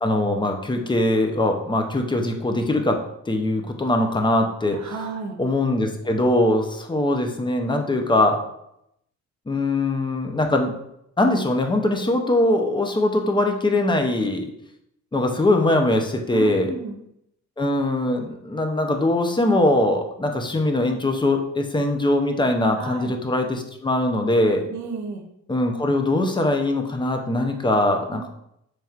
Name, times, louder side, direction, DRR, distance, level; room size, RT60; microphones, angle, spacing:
voice 1, 0.0-3.0 3.3-4.8 5.4-8.4 9.5-10.7 11.2-14.5 15.1-16.7 17.6-24.7 25.5-28.3, left 1 dB, 15° left, 4 dB, 0.5 m, -21 dB
voice 2, 4.7-5.4 16.3-17.0 22.8-23.1 24.7-25.3 28.1-28.2, right 4 dB, 70° right, 4 dB, 0.8 m, -32 dB
4.2 x 3.3 x 2.4 m, 0.79 s
cardioid pair, 90°, 30 cm